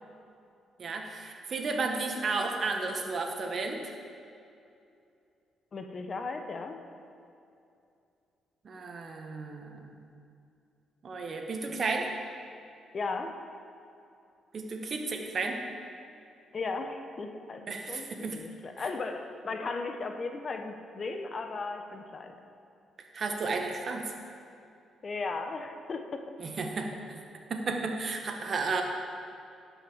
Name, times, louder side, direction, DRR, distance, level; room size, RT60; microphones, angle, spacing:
voice 1, 0.8-3.8 8.6-9.9 11.0-12.1 14.5-15.6 17.7-18.4 23.1-24.0 26.4-26.9 27.5-28.8, right 4 dB, 50° right, 3 dB, 1.4 m, -33 dB
voice 2, 5.7-6.8 12.9-13.4 16.5-22.3 25.0-26.2, left 3 dB, 45° left, 6 dB, 1.0 m, -36 dB
11.0 x 5.6 x 7.3 m, 2.6 s
supercardioid pair, 65°, 0 cm